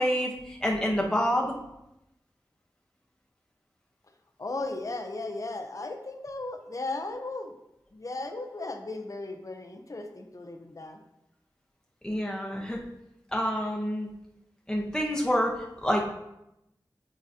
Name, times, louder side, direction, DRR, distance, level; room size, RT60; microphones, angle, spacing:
voice 1, 0.0-1.5 12.0-12.8 13.3-14.1 14.7-16.0, equal, 10° left, -2 dB, 0.9 m, -27 dB
voice 2, 4.4-7.5 7.9-11.0, left 2 dB, 40° left, 5 dB, 0.6 m, -36 dB
8.9 x 3.9 x 2.7 m, 0.87 s
wide cardioid pair, 75°, 8 cm